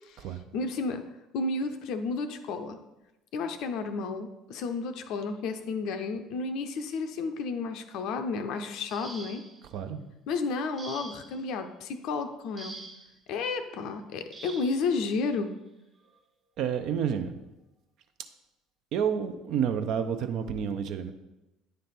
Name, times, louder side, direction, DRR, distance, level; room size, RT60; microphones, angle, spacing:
voice 1, 0.5-1.0 1.3-2.8 3.3-9.4 10.3-12.8 13.3-15.5, left 4 dB, 60° left, 7 dB, 0.5 m, -32 dB
sound 1, 8.8-9.7 10.8-11.4 12.6-13.1 14.3-14.8 16.0-16.1 16.7-16.9, right 3 dB, 35° right, 1.2 m, -45 dB
voice 2, 9.7-10.1 16.6-17.3 18.9-21.1, right 8 dB, 60° right, 8 dB, 0.6 m, -29 dB
9.2 x 3.2 x 4.2 m, 0.97 s
hypercardioid pair, 60°, 0 cm